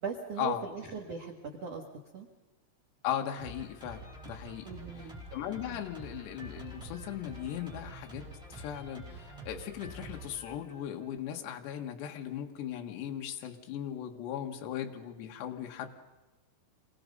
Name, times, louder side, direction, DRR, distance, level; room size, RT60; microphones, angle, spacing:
voice 1, 0.0-1.8 2.1-2.3 4.6-5.2, right 5 dB, 65° right, 0 dB, 1.5 m, -39 dB
voice 2, 3.0-4.7 5.0-15.9, left 10 dB, 65° left, 3 dB, 3.5 m, -38 dB
Drum kit, 3.4-11.2, right 1 dB, ahead, 7.5 m, -47 dB
27.5 x 22.0 x 5.4 m, 1.1 s
omnidirectional pair, 5.6 m